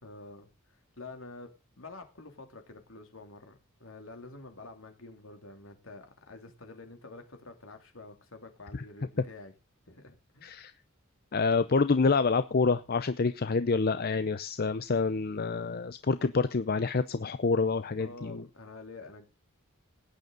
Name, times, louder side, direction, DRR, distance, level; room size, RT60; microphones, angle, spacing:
voice 1, 0.0-1.5 1.8-9.5 9.9-10.6 18.0-19.2, left 3 dB, 70° left, 5 dB, 3.0 m, -48 dB
voice 2, 11.3-18.4, left 4 dB, 45° left, 12 dB, 0.6 m, -27 dB
17.5 x 9.4 x 3.9 m, 0.28 s
head